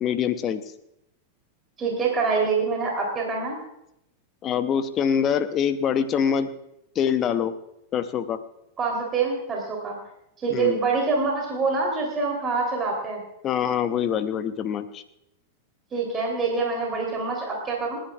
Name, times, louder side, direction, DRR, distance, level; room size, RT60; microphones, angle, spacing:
voice 1, 0.0-0.6 4.4-6.5 6.9-7.5 7.9-8.4 10.5-10.8 13.4-15.0, left 8 dB, 30° left, 11 dB, 0.8 m, -24 dB
voice 2, 1.8-3.6 8.8-10.0 10.4-13.2 15.9-18.0, right 4 dB, 25° right, -1 dB, 3.3 m, -25 dB
29.5 x 10.0 x 2.4 m, 0.81 s
figure-of-eight pair, 90°, 0 cm